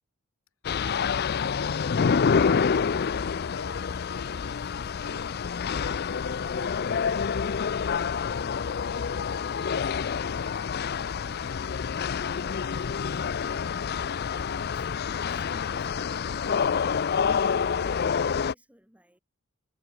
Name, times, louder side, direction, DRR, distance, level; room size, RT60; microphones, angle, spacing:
sound 1, 0.6-18.5, left 6 dB, 45° left, 0.4 m, -27 dB
voice 1, 0.9-5.3 5.8-7.4, left 4 dB, 65° left, 1.5 m, -48 dB
voice 2, 9.0-9.8 10.8-11.4 12.9-13.8 14.4-16.4 16.7-19.2, equal, 5° right, 3.9 m, -59 dB
head